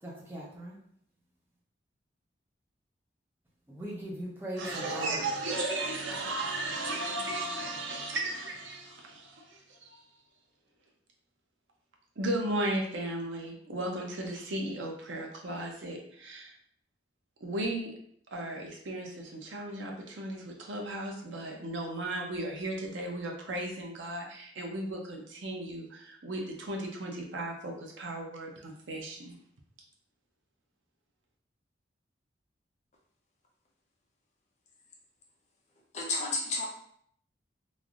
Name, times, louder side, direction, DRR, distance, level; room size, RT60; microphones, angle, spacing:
voice 1, 0.0-0.8 3.7-5.2, equal, 10° right, -4 dB, 0.5 m, -40 dB
voice 2, 4.6-10.0 12.2-16.5 17.4-17.9 18.3-29.4, right 1 dB, 85° right, 1 dB, 0.6 m, -35 dB
voice 3, 35.9-36.7, left 3 dB, 40° left, -1 dB, 0.6 m, -31 dB
3.2 x 2.5 x 2.4 m, 0.65 s
head